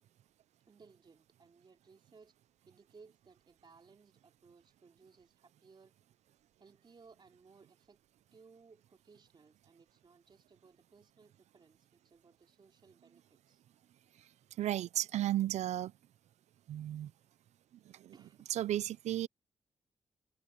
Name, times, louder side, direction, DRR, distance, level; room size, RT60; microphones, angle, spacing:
voice 1, 0.7-2.3 2.7-5.9 6.6-8.0 8.3-13.6 18.1-18.5, right 4 dB, 45° right, 3.5 m, -62 dB
voice 2, 14.6-15.9 16.7-17.1 17.9-18.1 18.5-19.3, right 13 dB, 90° right, 0.5 m, -34 dB
cardioid pair, 85°, 11 cm